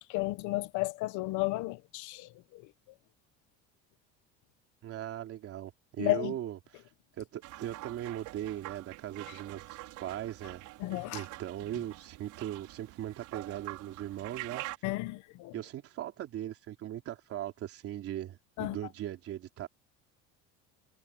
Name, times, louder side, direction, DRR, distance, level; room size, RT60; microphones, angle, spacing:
voice 1, 0.1-2.6 6.0-6.3 10.8-11.2 14.8-15.5 18.6-18.8, left 20 dB, 65° left, 1.2 m, -33 dB
voice 2, 4.8-6.8 7.2-10.6 11.1-14.6 15.5-19.7, right 12 dB, 45° right, 3.4 m, -39 dB
sound 1, 7.4-14.8, right 18 dB, 65° right, 4.8 m, -45 dB
cardioid pair, 170°, 32 cm